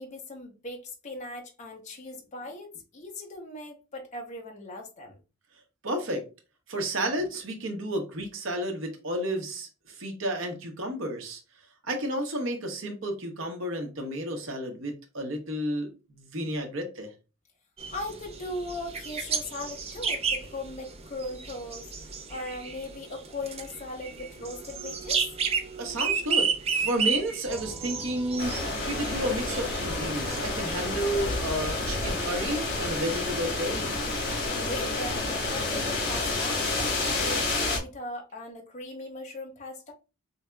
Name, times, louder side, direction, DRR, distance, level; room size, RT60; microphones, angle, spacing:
voice 1, 0.0-5.2 17.9-25.2 34.5-39.9, left 1 dB, 35° left, 0.7 m, -39 dB
voice 2, 5.8-6.2 6.7-11.4 11.8-17.1 25.8-28.5 28.9-34.0, right 1 dB, 65° right, 0.9 m, -32 dB
sound 1, 17.8-30.4, right 5 dB, 30° right, 0.5 m, -32 dB
sound 2, 27.5-37.4, right 1 dB, ahead, 1.0 m, -43 dB
sound 3, 28.4-37.8, left 2 dB, 55° left, 1.3 m, -30 dB
4.7 x 2.7 x 2.2 m
head